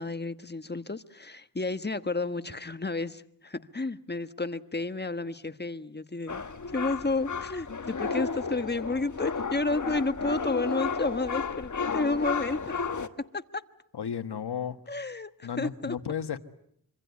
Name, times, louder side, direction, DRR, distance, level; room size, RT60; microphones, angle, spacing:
voice 1, 0.0-12.8 13.3-13.6 14.9-16.0, left 3 dB, 25° left, 1.3 m, -31 dB
sound 1, 6.3-13.1, left 5 dB, 50° left, 1.5 m, -33 dB
voice 2, 13.9-14.8 15.4-16.4, left 8 dB, 85° left, 1.5 m, -33 dB
26.0 x 25.5 x 8.3 m
cardioid pair, 55°, 39 cm